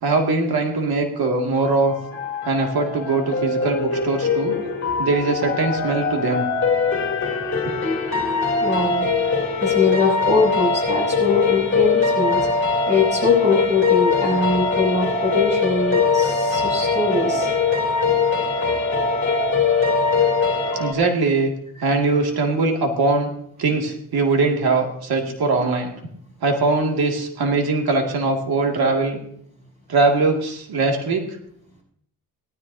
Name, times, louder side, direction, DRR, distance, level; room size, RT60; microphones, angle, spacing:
voice 1, 0.0-1.9 2.5-4.6 5.0-6.5 7.7-7.8 20.8-21.5 21.8-23.3 23.6-25.9 26.4-29.2 29.9-31.2, right 3 dB, 80° right, 2 dB, 2.3 m, -21 dB
sound 1, 1.6-20.9, left 4 dB, 30° left, 2.9 m, -22 dB
voice 2, 8.6-9.3 9.6-17.8, left 3 dB, 20° right, -2 dB, 6.9 m, -22 dB
18.0 x 13.5 x 2.7 m, 0.68 s
cardioid pair, 100°, 37 cm